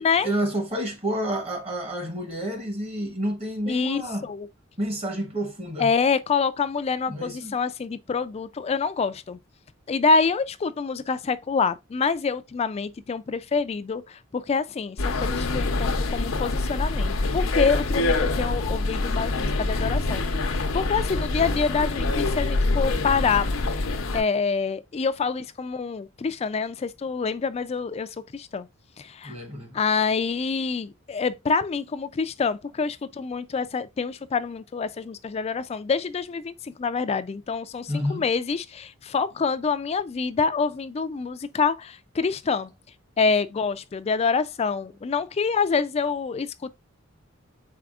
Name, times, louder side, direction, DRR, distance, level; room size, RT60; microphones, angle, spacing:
voice 1, 0.0-4.3 4.8-5.9 7.1-7.5 29.2-29.8 37.9-38.2, right 1 dB, 30° right, 1.1 m, -29 dB
voice 2, 3.7-4.5 5.8-9.4 9.9-23.5 24.1-28.7 29.0-29.3 29.7-42.7 43.2-46.7, left 5 dB, 30° left, 0.3 m, -26 dB
sound 1, 15.0-24.2, left 2 dB, 85° left, 0.7 m, -25 dB
4.7 x 4.2 x 2.4 m
head